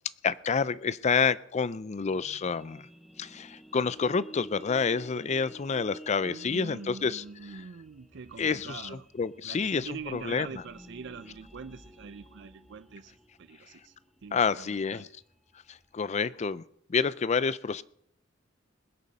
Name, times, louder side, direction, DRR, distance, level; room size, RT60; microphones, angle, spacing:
voice 1, 0.2-2.9 3.2-7.2 8.4-8.8 9.2-10.5 14.3-15.1 15.7-16.6 16.9-17.8, left 5 dB, 35° left, 0.4 m, -28 dB
sound 1, 2.0-16.1, equal, ahead, 0.8 m, -53 dB
voice 2, 6.3-9.1 9.4-14.0 14.2-15.1, right 5 dB, 65° right, 0.5 m, -44 dB
20.5 x 8.4 x 5.3 m
head